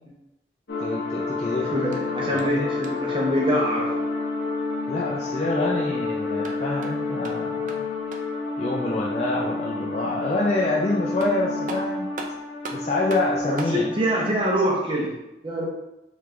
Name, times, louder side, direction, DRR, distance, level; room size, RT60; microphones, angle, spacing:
sound 1, 0.7-14.3, left 3 dB, 75° left, 0.8 m, -29 dB
voice 1, 0.8-1.7 2.3-2.7 4.9-7.9 8.6-12.1 12.7-13.9, left 2 dB, 35° left, -5 dB, 0.4 m, -26 dB
voice 2, 1.6-3.9 13.5-15.1 15.4-15.6, equal, 30° right, -3 dB, 0.8 m, -24 dB
sound 2, 1.9-3.2 6.2-8.4 10.7-10.8 11.2-13.8, right 2 dB, 45° right, 0.4 m, -40 dB
3.7 x 3.3 x 3.3 m, 0.92 s
head